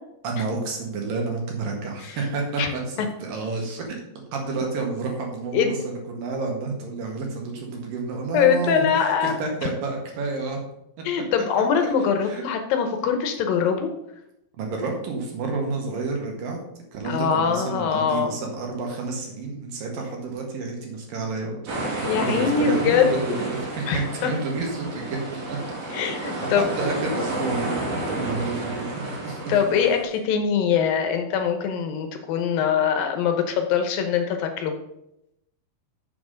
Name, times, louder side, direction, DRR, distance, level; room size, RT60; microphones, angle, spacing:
voice 1, 0.2-4.0 4.3-10.6 12.2-12.4 14.6-16.6 16.9-21.6 22.1-25.6 26.4-29.4, right 3 dB, 70° right, 0 dB, 3.4 m, -30 dB
voice 2, 8.3-9.3 11.0-13.9 17.0-18.4 22.1-23.1 23.9-24.3 25.9-26.7 29.5-34.8, left 7 dB, 75° left, 6 dB, 2.6 m, -23 dB
sound 1, 21.7-30.0, right 1 dB, 45° right, 2.8 m, -31 dB
7.2 x 6.0 x 6.3 m, 0.83 s
omnidirectional pair, 4.3 m